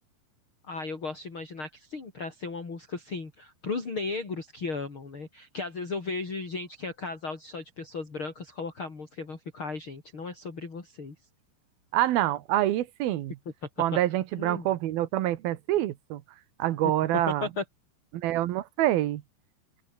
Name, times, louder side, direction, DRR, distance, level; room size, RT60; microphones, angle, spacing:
voice 1, 0.6-11.1 14.4-14.7 17.3-17.6, left 4 dB, 30° left, 4.6 m, -36 dB
voice 2, 11.9-13.4 13.8-16.2 16.6-17.5 18.1-19.2, right 14 dB, 70° right, 2.9 m, -26 dB
open air
omnidirectional pair, 4.7 m